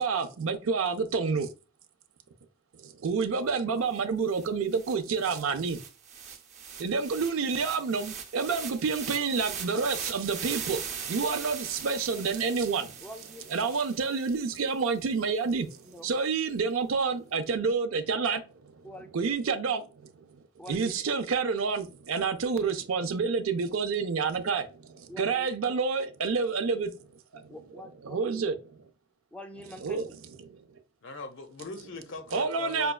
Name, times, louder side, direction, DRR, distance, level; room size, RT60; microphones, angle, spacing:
voice 1, 0.0-1.5 2.8-5.8 6.8-13.0 13.5-18.8 19.1-20.4 20.7-26.9 27.3-27.6 28.0-28.9 29.8-30.1 30.4-30.6 32.3-32.9, right 5 dB, 90° right, 0.5 m, -29 dB
sound 1, 4.0-4.1 4.3-14.7, right 7 dB, 35° right, 0.6 m, -40 dB
voice 2, 13.0-13.5 15.8-16.1 18.8-19.3 20.6-20.9 25.1-25.5 27.5-28.5 29.3-30.2, left 1 dB, 5° left, 0.4 m, -45 dB
voice 3, 31.0-32.9, left 3 dB, 65° left, 0.7 m, -40 dB
5.1 x 2.3 x 2.3 m
head